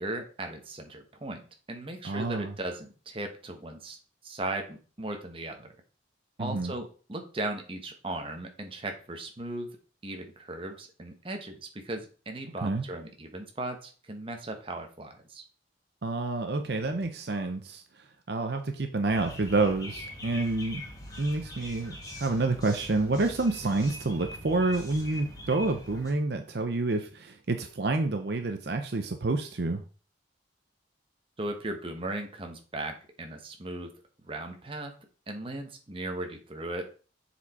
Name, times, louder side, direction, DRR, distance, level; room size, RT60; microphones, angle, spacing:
voice 1, 0.0-1.4 1.7-4.0 4.2-5.7 6.4-9.7 10.0-15.4 31.4-33.9 34.2-34.9 35.3-36.9, right 2 dB, 30° right, 4 dB, 1.0 m, -37 dB
voice 2, 2.0-2.5 6.4-6.7 12.6-12.8 16.0-17.8 18.3-20.8 21.2-29.8, right 2 dB, 60° right, 6 dB, 0.6 m, -28 dB
sound 1, 19.1-26.1, left 1 dB, 20° left, 1.7 m, -43 dB
7.2 x 4.4 x 4.2 m, 0.37 s
head